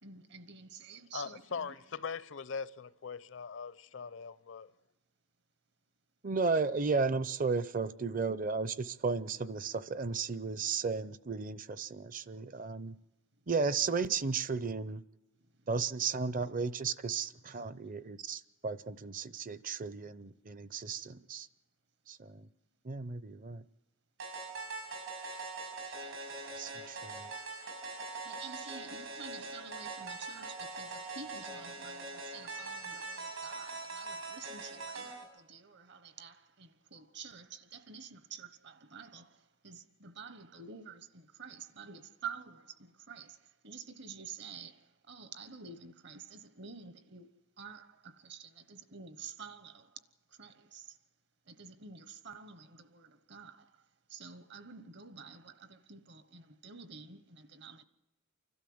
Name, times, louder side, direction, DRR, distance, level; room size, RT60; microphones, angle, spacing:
voice 1, 0.0-1.7 28.2-47.3 47.6-50.0 50.4-51.0 51.5-53.7 54.1-57.8, right 5 dB, 55° right, 1.1 m, -49 dB
voice 2, 1.1-4.7, left 5 dB, 65° left, 0.6 m, -41 dB
voice 3, 6.2-13.0 13.5-15.0 15.7-21.5 22.1-22.5 22.8-23.6 26.6-27.3, right 4 dB, 40° right, 0.6 m, -34 dB
sound 1, 24.2-35.2, right 3 dB, 85° right, 5.8 m, -42 dB
29.5 x 12.5 x 7.8 m
head